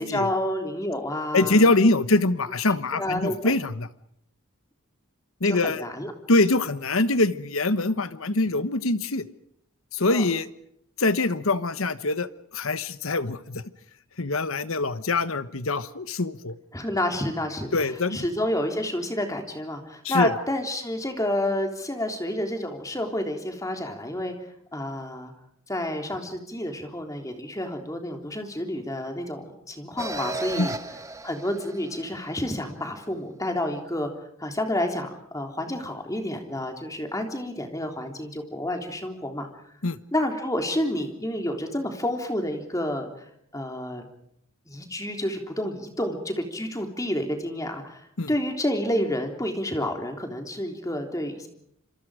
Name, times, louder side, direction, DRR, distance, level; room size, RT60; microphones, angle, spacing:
voice 1, 0.0-1.6 3.0-3.5 5.4-6.1 10.1-10.3 16.7-24.4 24.7-25.3 25.7-30.7 31.2-34.1 34.4-39.5 40.1-43.1 43.5-44.0 44.7-51.5, left 1 dB, 15° left, 4 dB, 3.5 m, -29 dB
voice 2, 1.3-3.9 5.4-5.8 6.3-9.2 9.9-10.5 11.0-13.6 14.2-16.5 17.7-18.2 20.0-20.3 30.6-30.7 39.8-40.0 48.2-48.3, left 2 dB, 70° left, 13 dB, 1.3 m, -24 dB
sound 1, 30.0-32.5, right 2 dB, 15° right, 1.6 m, -35 dB
27.0 x 27.0 x 5.1 m, 0.72 s
head